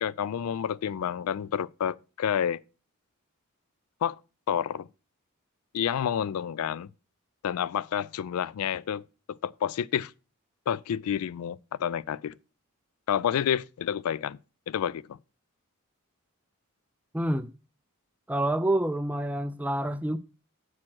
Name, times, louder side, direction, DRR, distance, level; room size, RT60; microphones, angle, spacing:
voice 1, 0.0-2.6 4.0-4.2 4.5-4.9 5.7-6.9 7.4-9.0 9.3-10.1 10.7-12.4 13.1-14.4 14.7-15.2, left 9 dB, 80° left, 0.3 m, -29 dB
voice 2, 17.1-17.5 18.3-20.2, right 1 dB, 5° right, 0.3 m, -27 dB
7.5 x 6.1 x 4.5 m
head